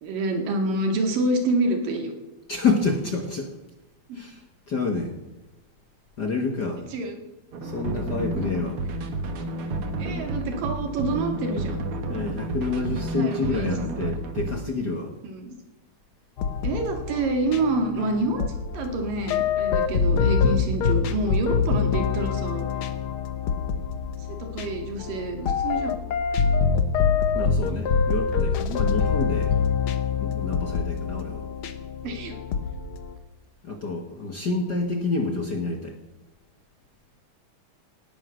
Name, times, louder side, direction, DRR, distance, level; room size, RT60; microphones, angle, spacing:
voice 1, 0.0-2.1 4.1-4.2 6.9-7.2 8.4-8.5 10.0-11.8 12.9-13.7 15.2-15.6 16.6-18.5 18.7-22.7 24.3-26.0 29.0-29.3 32.0-32.4, right 2 dB, 85° right, 4 dB, 3.9 m, -27 dB
voice 2, 2.5-3.5 4.1-5.2 6.2-6.8 7.6-8.8 12.1-15.1 27.3-29.5 30.2-31.4 33.6-36.0, left 4 dB, 45° left, 4 dB, 1.4 m, -28 dB
sound 1, 7.5-14.7, right 2 dB, 50° right, 2.0 m, -30 dB
sound 2, 16.4-33.1, left 6 dB, 60° left, 1.4 m, -25 dB
18.0 x 11.0 x 6.4 m, 1.0 s
omnidirectional pair, 3.8 m